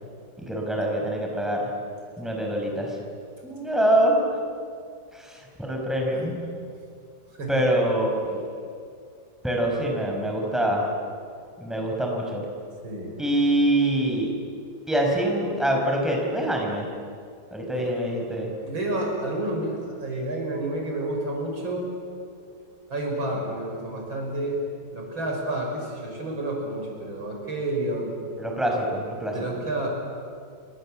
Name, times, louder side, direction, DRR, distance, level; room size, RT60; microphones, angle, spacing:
voice 1, 0.4-1.7 2.2-3.0 3.4-4.2 5.1-6.4 7.5-8.4 9.4-10.9 11.6-12.5 13.2-14.3 14.9-16.9 17.5-18.5 28.4-29.4, right 1 dB, ahead, 0 dB, 5.2 m, -25 dB
voice 2, 12.8-13.1 17.7-17.9 18.6-21.9 22.9-28.1 29.3-29.9, right 1 dB, 80° right, 0 dB, 6.1 m, -30 dB
27.5 x 25.0 x 7.6 m, 2.3 s
omnidirectional pair, 2.1 m